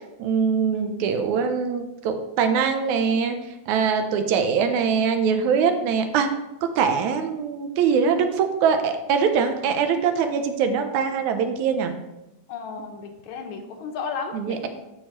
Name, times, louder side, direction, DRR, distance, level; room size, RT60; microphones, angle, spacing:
voice 1, 0.2-3.4 3.7-6.3 6.6-11.9 14.3-14.7, right 6 dB, 85° right, 7 dB, 2.1 m, -22 dB
voice 2, 0.7-1.1 12.5-14.7, left 5 dB, 80° left, 4 dB, 2.2 m, -34 dB
13.0 x 4.7 x 3.0 m, 0.97 s
omnidirectional pair, 3.4 m